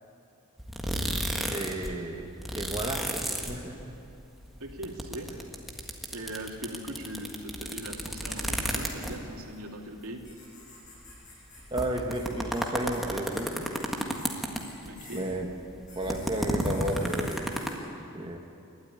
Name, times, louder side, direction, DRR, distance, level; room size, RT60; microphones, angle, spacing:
sound 1, 0.6-1.9 2.2-4.1 4.4-9.4 10.0-10.1 10.3-10.4 11.1-11.2 11.6-15.0 15.3-17.7, equal, ahead, 1.6 m, -32 dB
voice 1, 1.5-2.3 2.5-3.9 11.7-13.6 15.1-15.5 15.9-17.4 18.1-18.4, right 1 dB, 20° right, 1 dB, 1.5 m, -32 dB
voice 2, 4.6-5.3 6.1-10.2 14.8-15.4, right 1 dB, 90° right, 1 dB, 2.7 m, -40 dB
sound 2, 10.2-11.9 12.1-12.2 12.5-12.6 12.9-13.0 13.3-13.4 13.7-14.3 14.6-15.2 15.9-17.8, left 3 dB, 35° left, 7.9 m, -49 dB
29.0 x 12.5 x 9.8 m, 2.8 s
head